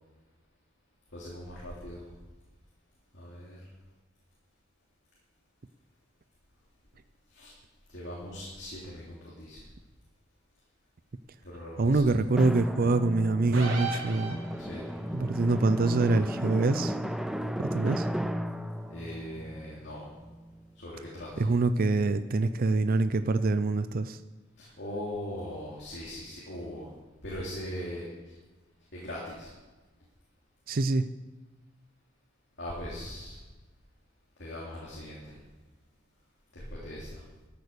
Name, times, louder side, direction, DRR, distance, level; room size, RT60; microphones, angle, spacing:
voice 1, 1.1-2.0 3.1-3.6 7.3-7.5 7.9-9.6 11.4-12.2 14.6-14.8 18.9-20.1 20.8-21.5 24.6-26.9 27.2-28.3 28.9-29.5 32.6-33.4 34.4-35.4 36.5-37.2, left 1 dB, 60° left, -5 dB, 3.1 m, -40 dB
voice 2, 11.8-14.4 15.1-17.0 17.6-18.1 21.4-24.2 30.7-31.1, right 3 dB, 50° right, 11 dB, 0.5 m, -25 dB
Drum, 12.4-20.7, equal, ahead, 0.5 m, -35 dB
sound 1, 13.5-14.9, right 4 dB, 90° right, 3.4 m, -35 dB
13.5 x 8.4 x 6.8 m, 1.2 s
head